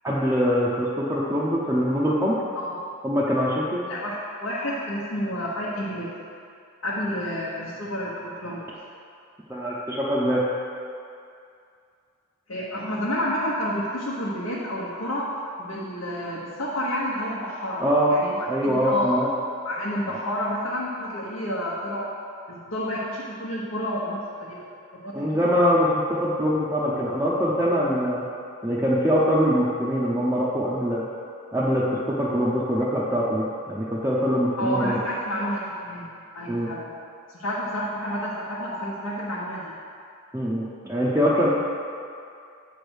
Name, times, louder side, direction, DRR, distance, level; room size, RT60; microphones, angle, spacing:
voice 1, 0.0-2.4 3.0-3.8 9.5-10.4 17.8-18.1 18.5-19.3 20.1-20.2 25.1-28.2 28.6-31.0 31.5-35.0 36.5-36.7 40.3-41.5, equal, 10° right, -8 dB, 0.6 m, -23 dB
voice 2, 3.9-6.1 6.8-8.7 12.5-15.3 15.6-19.2 19.6-22.1 22.5-24.6 24.9-25.1 34.6-36.1 36.3-36.9 37.3-39.7, equal, 65° left, -7 dB, 1.0 m, -30 dB
8.8 x 3.4 x 6.3 m, 2.4 s
head